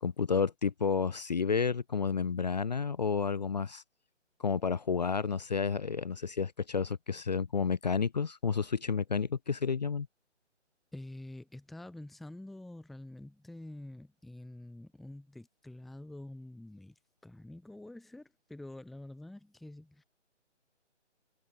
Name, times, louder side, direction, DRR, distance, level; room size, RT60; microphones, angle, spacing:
voice 1, 0.0-3.8 4.4-10.1, left 5 dB, 35° left, 0.9 m, -31 dB
voice 2, 10.9-20.0, left 1 dB, ahead, 1.0 m, -47 dB
hypercardioid pair, 165°, 36 cm